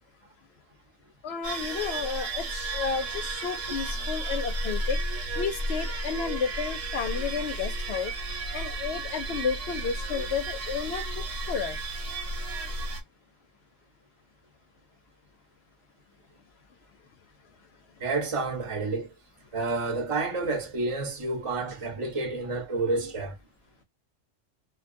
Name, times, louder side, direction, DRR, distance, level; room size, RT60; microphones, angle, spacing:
voice 1, 1.2-5.0 5.3-8.1 8.5-11.8, left 6 dB, 65° left, 0.7 m, -32 dB
sound 1, 1.4-13.0, right 2 dB, 75° right, 1.2 m, -33 dB
voice 2, 18.0-19.1 19.5-23.4, right 3 dB, 30° right, 0.8 m, -29 dB
2.4 x 2.2 x 2.5 m
omnidirectional pair, 1.3 m